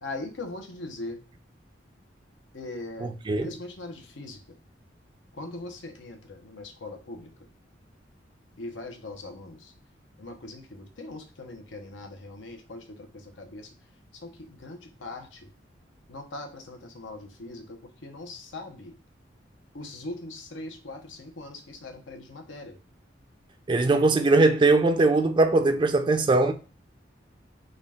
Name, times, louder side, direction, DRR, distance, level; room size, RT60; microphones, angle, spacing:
voice 1, 0.0-1.2 2.5-3.1 3.4-4.4 5.3-7.3 8.6-9.7 10.2-13.7 14.2-15.5 16.1-18.9 19.7-22.8, left 2 dB, 85° left, 0.8 m, -40 dB
voice 2, 3.0-3.5 23.7-26.5, right 3 dB, 25° right, 0.3 m, -21 dB
3.8 x 2.3 x 3.4 m
head